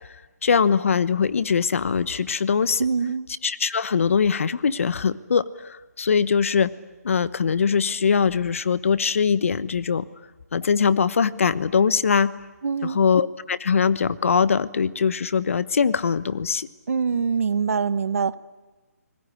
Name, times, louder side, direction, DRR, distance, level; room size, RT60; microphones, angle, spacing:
voice 1, 0.4-2.8 3.4-6.7 7.0-10.1 10.5-12.3 12.8-16.7, left 6 dB, 55° left, 16 dB, 1.1 m, -22 dB
voice 2, 2.8-3.3 12.6-13.0 16.9-18.4, right 5 dB, 60° right, 16 dB, 1.1 m, -24 dB
28.5 x 20.0 x 9.9 m, 1.2 s
hypercardioid pair, 170°, 9 cm